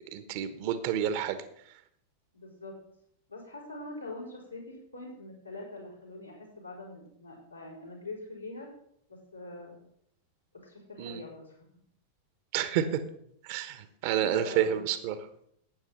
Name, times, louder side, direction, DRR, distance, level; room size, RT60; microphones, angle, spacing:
voice 1, 0.1-1.4 11.0-11.2 12.5-13.0 13.4-15.1, right 10 dB, 50° right, 12 dB, 1.2 m, -29 dB
voice 2, 2.3-2.8 3.3-8.7 9.1-9.7 10.6-11.6 14.2-14.9, left 2 dB, 85° left, -4 dB, 5.0 m, -43 dB
12.0 x 9.0 x 5.6 m, 0.69 s
figure-of-eight pair, 90°, 0 cm